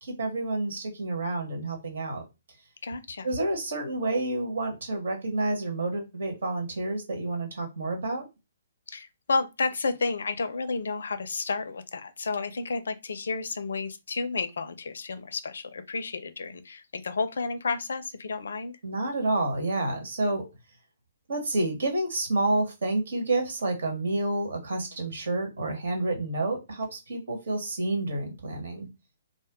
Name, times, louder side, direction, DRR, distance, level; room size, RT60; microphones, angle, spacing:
voice 1, 0.0-2.2 3.2-8.3 18.8-20.5 21.3-28.9, right 2 dB, 70° right, 1.3 m, -29 dB
voice 2, 2.8-3.3 3.8-3.9 8.9-18.7, left 4 dB, 70° left, 0.4 m, -31 dB
2.6 x 2.2 x 3.4 m
hypercardioid pair, 135°, 0 cm